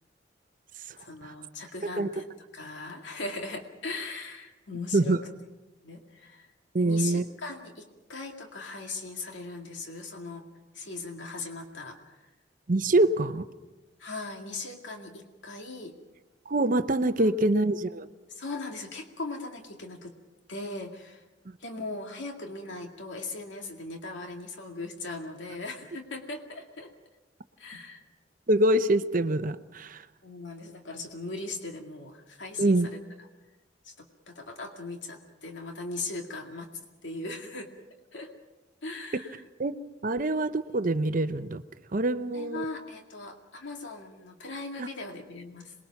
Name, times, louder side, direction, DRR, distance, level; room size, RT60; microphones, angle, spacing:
voice 1, 1.0-2.2 2.5-5.2 5.8-6.5 6.8-10.4 10.7-12.2 14.0-15.9 17.2-17.3 18.3-20.1 20.5-21.2 21.6-26.9 27.6-28.0 30.2-33.0 33.8-36.7 37.0-37.7 38.1-38.3 38.8-39.4 40.2-40.3 42.3-45.7, left 3 dB, 85° left, 3 dB, 2.2 m, -39 dB
voice 2, 6.7-7.2 12.7-13.5 16.5-18.1 28.5-30.0 32.6-32.9 39.6-39.7 40.0-41.6 41.9-42.6 44.8-44.9, right 2 dB, 45° right, 11 dB, 0.7 m, -25 dB
27.5 x 21.0 x 5.9 m, 1.1 s
head